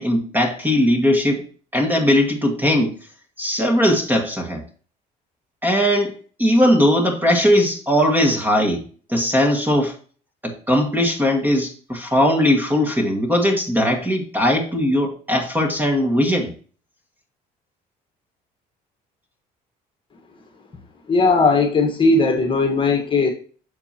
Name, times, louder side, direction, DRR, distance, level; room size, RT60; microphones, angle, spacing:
voice 1, 0.0-1.4 1.7-3.0 3.4-4.6 5.6-8.8 9.1-9.9 10.4-16.5, equal, 10° right, 3 dB, 1.9 m, -19 dB
voice 2, 21.1-23.3, left 3 dB, 30° left, 3 dB, 1.5 m, -17 dB
7.0 x 6.8 x 2.9 m, 0.41 s
cardioid pair, 110°, 17 cm